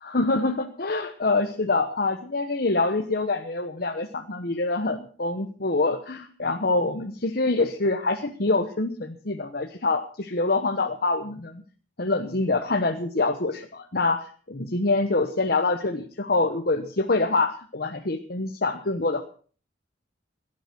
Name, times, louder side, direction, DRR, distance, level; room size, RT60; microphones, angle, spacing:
voice 1, 0.1-11.6 12.0-19.3, left 3 dB, 55° left, 5 dB, 1.2 m, -25 dB
17.0 x 11.5 x 6.0 m, 0.43 s
head